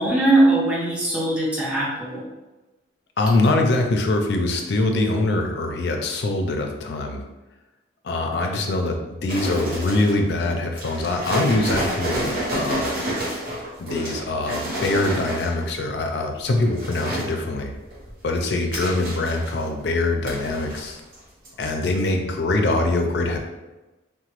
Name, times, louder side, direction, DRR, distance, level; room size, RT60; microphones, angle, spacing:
voice 1, 0.0-2.2, right 2 dB, 5° right, -6 dB, 0.5 m, -20 dB
voice 2, 3.2-7.2 8.0-12.9 13.8-17.7 18.2-21.0 21.6-23.4, left 2 dB, 55° left, 3 dB, 0.4 m, -23 dB
sound 1, 9.3-10.3 10.8-15.7 16.4-17.3 17.7-19.8 20.2-21.2 21.4-21.7 22.0-22.1, equal, 45° right, 0.8 m, -29 dB
2.9 x 2.1 x 2.9 m, 1.1 s
head